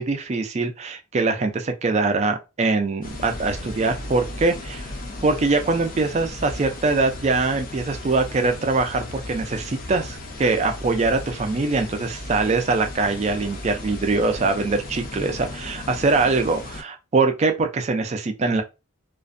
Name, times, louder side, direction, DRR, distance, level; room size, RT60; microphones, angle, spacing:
voice 1, 0.0-4.9 5.2-18.6, right 3 dB, 30° right, 0.3 m, -23 dB
sound 1, 3.0-16.8, left 2 dB, 40° left, 0.4 m, -36 dB
2.4 x 2.1 x 2.5 m
head